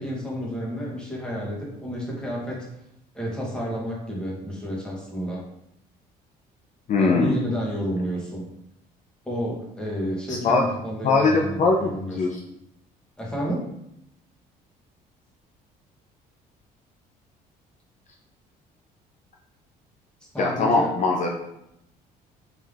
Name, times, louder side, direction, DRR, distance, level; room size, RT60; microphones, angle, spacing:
voice 1, 0.0-2.7 3.1-5.4 7.0-8.4 9.2-12.4 13.2-13.7 20.3-20.9, equal, 5° left, -4 dB, 1.4 m, -30 dB
voice 2, 6.9-7.3 10.3-10.6 11.0-12.4 20.4-21.3, left 3 dB, 45° left, 0 dB, 0.6 m, -21 dB
3.5 x 3.2 x 3.5 m, 0.79 s
cardioid pair, 110°, 17 cm